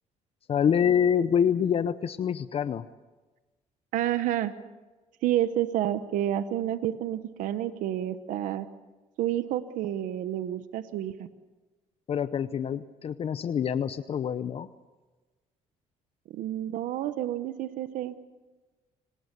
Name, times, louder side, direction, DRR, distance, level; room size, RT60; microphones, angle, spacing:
voice 1, 0.5-2.9 12.1-14.7, left 8 dB, 50° left, 13 dB, 0.8 m, -26 dB
voice 2, 3.9-4.5 5.2-8.7 9.2-11.3 16.3-18.1, right 12 dB, 85° right, 12 dB, 1.0 m, -29 dB
27.5 x 19.0 x 6.9 m, 1.2 s
cardioid pair, 100°, 13 cm